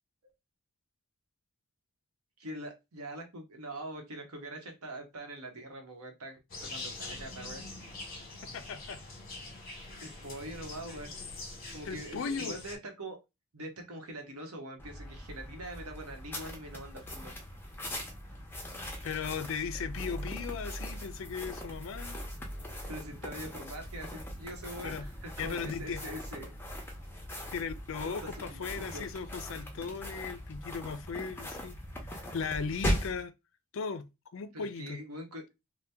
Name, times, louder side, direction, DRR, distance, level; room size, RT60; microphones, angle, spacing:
voice 1, 2.4-7.6 10.0-11.1 11.7-13.2 13.5-17.3 22.8-26.5 28.3-29.1 34.5-35.4, right 1 dB, 90° right, 0.9 m, -43 dB
sound 1, 6.5-12.8, left 2 dB, 40° left, 0.9 m, -44 dB
voice 2, 8.5-9.0 11.9-12.6 19.0-22.2 24.8-25.1 25.4-26.0 27.5-31.8 32.1-33.3 33.7-34.1 34.3-35.0, left 5 dB, 60° left, 0.4 m, -37 dB
sound 2, 14.8-33.2, equal, 10° left, 0.6 m, -40 dB
2.8 x 2.1 x 3.4 m
head